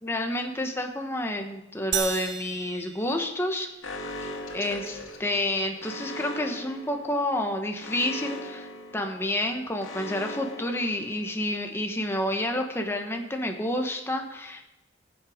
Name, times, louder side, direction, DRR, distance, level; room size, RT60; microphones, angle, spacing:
voice 1, 0.0-3.7 4.5-14.6, left 1 dB, 10° left, 3 dB, 1.3 m, -29 dB
sound 1, 1.9-3.9, right 8 dB, 60° right, 1.0 m, -33 dB
Alarm, 3.8-11.6, left 1 dB, 85° left, 2.0 m, -40 dB
17.5 x 7.8 x 5.1 m, 0.93 s
head